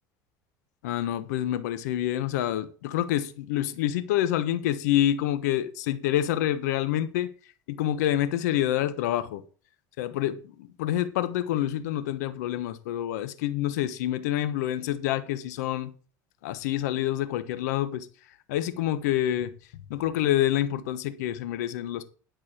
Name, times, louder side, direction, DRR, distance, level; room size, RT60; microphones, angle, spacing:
voice 1, 0.8-7.3 7.7-9.4 10.0-15.9 16.4-18.1 18.5-19.5 19.9-22.0, left 12 dB, 90° left, 1.2 m, -27 dB
11.5 x 6.4 x 6.3 m
supercardioid pair, 110°, 9 cm